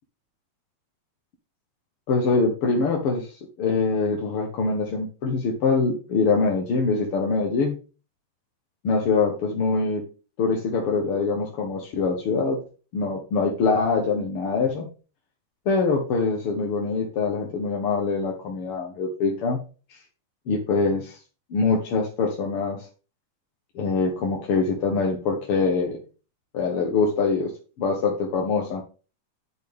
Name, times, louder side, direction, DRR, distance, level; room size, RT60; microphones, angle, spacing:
voice 1, 2.1-7.8 8.8-10.0 10.4-12.6 12.9-14.9 15.7-19.6 19.9-20.0 20.5-21.2 21.5-22.9 23.8-26.0 26.5-27.5 27.8-28.8, left 4 dB, 55° left, 0 dB, 1.9 m, -24 dB
11.5 x 6.4 x 3.5 m, 0.34 s
omnidirectional pair, 3.7 m